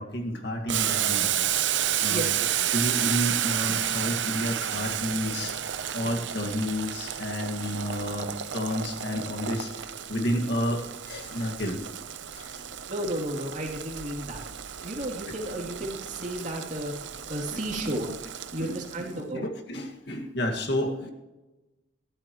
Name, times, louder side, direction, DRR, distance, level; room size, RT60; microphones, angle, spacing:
voice 1, 0.0-1.5 2.0-2.2 2.7-11.8 12.3-12.7 17.5-17.6 18.6-18.8 19.1-21.1, equal, 55° left, 3 dB, 2.0 m, -31 dB
Boiling, 0.7-19.1, right 10 dB, 70° right, 0.8 m, -31 dB
voice 2, 2.1-2.5 12.9-14.4 14.8-16.9 17.3-18.2 18.5-19.5, right 1 dB, 40° right, 0 dB, 3.0 m, -33 dB
21.0 x 13.5 x 3.1 m, 1.1 s
head